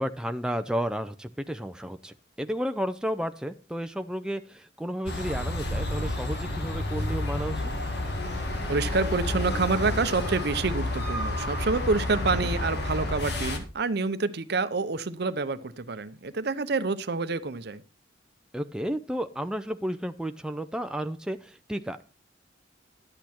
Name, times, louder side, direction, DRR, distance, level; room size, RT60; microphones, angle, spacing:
voice 1, 0.0-7.7 12.4-12.5 18.5-22.0, equal, 5° right, 0.4 m, -32 dB
sound 1, 5.1-13.6, left 1 dB, 60° left, 1.9 m, -30 dB
voice 2, 8.7-17.8, right 3 dB, 60° right, 0.7 m, -28 dB
11.5 x 8.4 x 4.4 m
head